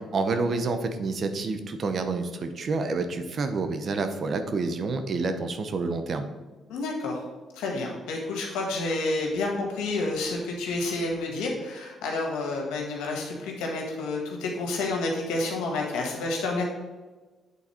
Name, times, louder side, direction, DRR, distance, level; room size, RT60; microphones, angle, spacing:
voice 1, 0.1-6.3, right 3 dB, 50° right, 8 dB, 0.8 m, -28 dB
voice 2, 6.7-7.2 7.5-16.6, left 2 dB, 85° left, 0 dB, 1.6 m, -29 dB
8.4 x 4.0 x 4.3 m, 1.3 s
cardioid pair, 80°, 0 cm